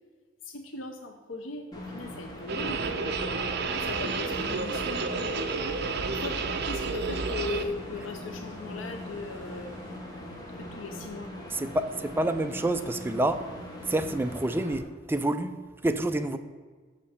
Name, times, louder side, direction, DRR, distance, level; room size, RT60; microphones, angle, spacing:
voice 1, 0.4-3.0 3.7-5.8 6.1-9.7 10.6-11.3, left 3 dB, 80° left, 5 dB, 0.7 m, -39 dB
sound 1, 1.7-14.8, left 1 dB, 20° left, 1.2 m, -41 dB
sound 2, 2.5-7.6, right 4 dB, 55° right, 0.6 m, -31 dB
sound 3, 3.7-10.0, equal, 40° right, 1.8 m, -49 dB
voice 2, 11.5-13.5 13.9-16.4, right 1 dB, 10° right, 8 dB, 0.3 m, -28 dB
6.6 x 5.1 x 7.0 m, 1.5 s
head